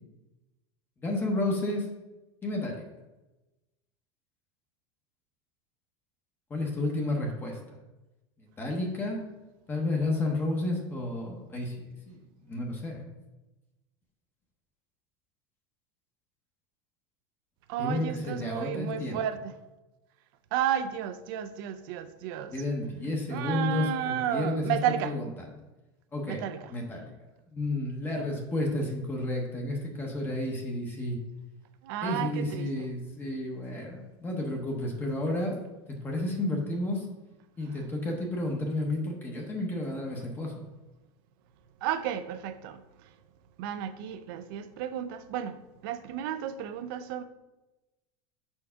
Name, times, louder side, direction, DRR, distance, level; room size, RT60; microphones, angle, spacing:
voice 1, 1.0-1.9 2.4-2.8 6.5-7.8 8.4-9.2 9.7-12.2 12.4-13.0 17.8-19.2 22.5-25.3 26.1-27.1 27.5-31.2 32.0-35.6 36.0-37.1 37.6-40.7, left 2 dB, 15° left, 0.8 m, -31 dB
voice 2, 17.7-19.4 20.5-22.6 23.3-25.1 26.3-26.6 31.8-32.9 41.8-42.8 43.6-45.6 45.8-47.2, right 10 dB, 55° right, 0.5 m, -32 dB
4.7 x 4.4 x 5.6 m
supercardioid pair, 165°, 14 cm